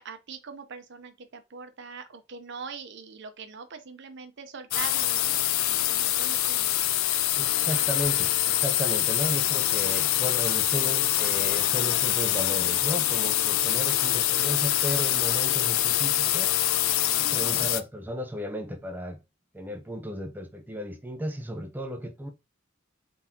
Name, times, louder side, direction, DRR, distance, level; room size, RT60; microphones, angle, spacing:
voice 1, 0.0-5.3 5.6-6.7 17.2-17.7, right 5 dB, 60° right, 0.7 m, -42 dB
sound 1, 4.7-17.8, left 13 dB, 85° left, 0.4 m, -25 dB
voice 2, 7.4-16.5 17.2-19.2 19.5-22.3, equal, 10° right, 0.6 m, -34 dB
3.9 x 3.6 x 2.7 m
head